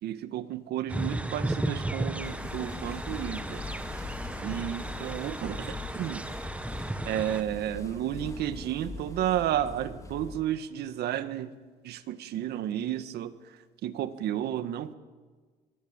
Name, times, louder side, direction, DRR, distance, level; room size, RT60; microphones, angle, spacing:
voice 1, 0.0-3.6 4.4-6.2 7.0-11.5 11.8-13.3 13.8-14.9, right 11 dB, 75° right, 11 dB, 1.7 m, -32 dB
sound 1, 0.9-7.4, right 1 dB, 5° right, 1.3 m, -35 dB
sound 2, 2.2-10.4, left 3 dB, 20° left, 3.1 m, -41 dB
23.0 x 21.5 x 9.0 m, 1.4 s
cardioid pair, 110°, 17 cm